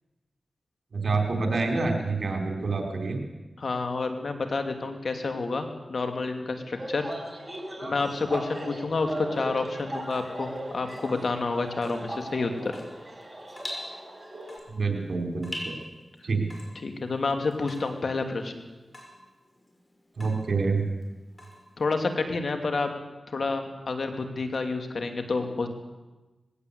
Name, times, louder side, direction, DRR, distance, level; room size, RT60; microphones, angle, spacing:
voice 1, 0.9-3.2 14.7-15.7 16.2-16.5 20.2-20.9, right 4 dB, 70° right, 3 dB, 4.2 m, -27 dB
voice 2, 3.6-7.1 7.8-12.8 16.7-18.6 21.8-22.9 23.3-25.7, left 3 dB, 65° left, 6 dB, 2.9 m, -29 dB
sound 1, 6.7-14.6, right 1 dB, 25° right, 4.9 m, -38 dB
Water tap faucet / Drip, 10.0-22.1, left 1 dB, 30° left, 6.1 m, -45 dB
20.0 x 17.0 x 8.3 m, 1.2 s
cardioid pair, 50°, 0 cm